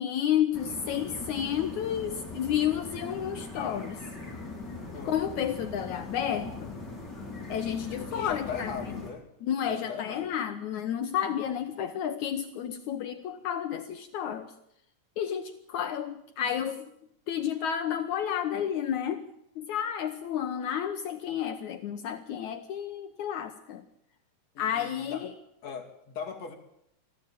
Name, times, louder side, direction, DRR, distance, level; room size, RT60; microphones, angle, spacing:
voice 1, 0.0-4.0 5.0-6.7 7.5-8.8 9.4-14.5 15.2-16.9 17.3-19.3 19.6-23.8 24.6-25.3, left 9 dB, 70° left, 8 dB, 2.2 m, -31 dB
sound 1, 0.5-9.1, left 3 dB, 30° left, 5.4 m, -40 dB
voice 2, 8.1-9.3 9.7-10.3 24.6-25.2 25.6-26.5, left 6 dB, 55° left, 4 dB, 3.6 m, -39 dB
23.0 x 15.0 x 9.0 m, 0.76 s
omnidirectional pair, 3.8 m